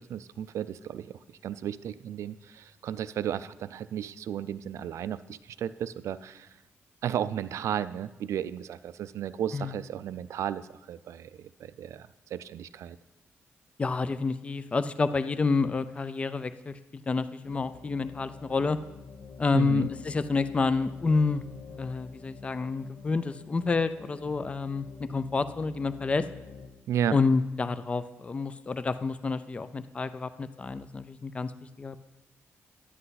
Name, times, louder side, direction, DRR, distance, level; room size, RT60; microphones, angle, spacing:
voice 1, 0.0-6.5 7.0-13.0 19.5-19.9 26.9-27.2, right 10 dB, 75° right, 14 dB, 0.3 m, -34 dB
voice 2, 13.8-18.8 19.4-21.4 21.8-26.3 27.1-31.5 31.8-32.0, left 4 dB, 25° left, 13 dB, 0.4 m, -29 dB
sound 1, 17.4-26.7, left 5 dB, 75° left, 1.1 m, -47 dB
11.0 x 7.7 x 4.0 m, 0.99 s
cardioid pair, 105°, 5 cm